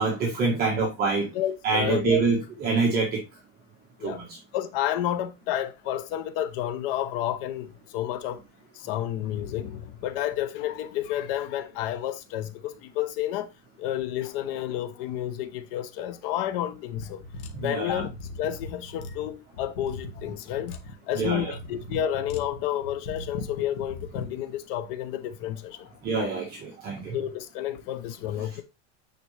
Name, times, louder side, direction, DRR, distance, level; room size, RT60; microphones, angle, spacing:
voice 1, 0.0-1.3 1.6-3.2 4.0-4.4 17.5-18.0 21.1-21.5 26.0-27.1, right 4 dB, 25° right, 1.4 m, -26 dB
voice 2, 1.3-2.2 4.0-4.2 4.5-8.4 8.7-13.5 13.8-17.2 17.6-18.1 18.4-20.8 21.1-25.9 27.1-28.6, left 11 dB, 50° left, 0.8 m, -30 dB
sound 1, 17.0-24.3, left 3 dB, 70° left, 1.6 m, -39 dB
9.4 x 4.1 x 3.3 m
cardioid pair, 180°, 35 cm